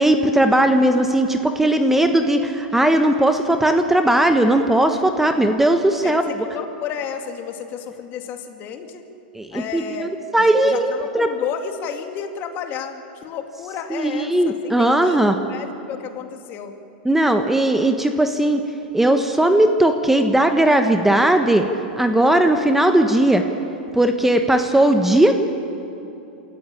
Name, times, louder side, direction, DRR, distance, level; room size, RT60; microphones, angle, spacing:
voice 1, 0.0-6.2 9.3-11.3 13.9-15.3 17.0-18.6 18.9-21.7 22.0-23.5 23.9-25.3, right 1 dB, 5° right, 6 dB, 1.2 m, -17 dB
voice 2, 6.0-9.0 9.5-16.7, left 7 dB, 40° left, 5 dB, 2.3 m, -32 dB
27.5 x 14.0 x 8.6 m, 2.9 s
hypercardioid pair, 110°, 5 cm